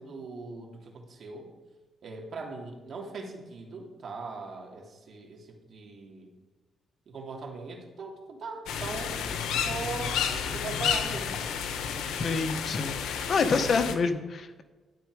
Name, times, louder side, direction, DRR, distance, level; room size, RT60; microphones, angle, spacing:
voice 1, 0.0-1.5 2.0-6.3 7.1-11.5, right 4 dB, 55° right, 0 dB, 2.7 m, -40 dB
sound 1, 8.7-13.9, left 7 dB, 85° left, 1.1 m, -31 dB
voice 2, 12.2-14.6, left 4 dB, 50° left, 8 dB, 1.2 m, -27 dB
12.0 x 9.7 x 4.9 m, 1.2 s
cardioid pair, 90°, 0 cm